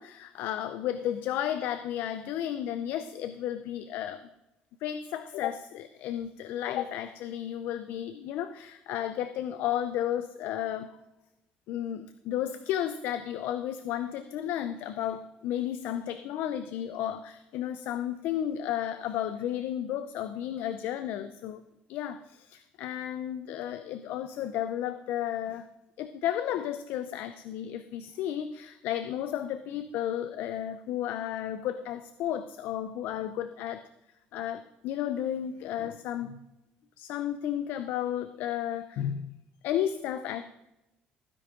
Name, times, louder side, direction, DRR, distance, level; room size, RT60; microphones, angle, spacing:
voice 1, 0.0-4.3 4.8-10.9 11.7-21.6 21.9-25.7 26.0-33.9 34.3-36.4 37.0-39.3 39.6-40.4, left 11 dB, 75° left, 11 dB, 0.6 m, -33 dB
16.0 x 9.9 x 3.8 m, 0.91 s
cardioid pair, 120°, 3 cm